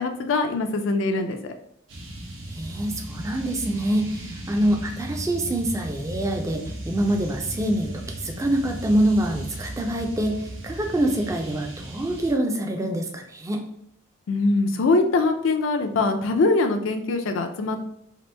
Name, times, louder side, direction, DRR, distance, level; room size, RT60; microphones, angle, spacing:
voice 1, 0.0-1.5 14.3-17.8, left 3 dB, 80° left, 6 dB, 0.4 m, -23 dB
sound 1, 1.9-12.3, right 1 dB, 70° right, 0.9 m, -36 dB
voice 2, 2.5-13.6, right 1 dB, 15° right, 3 dB, 0.3 m, -25 dB
2.9 x 2.6 x 3.2 m, 0.75 s
head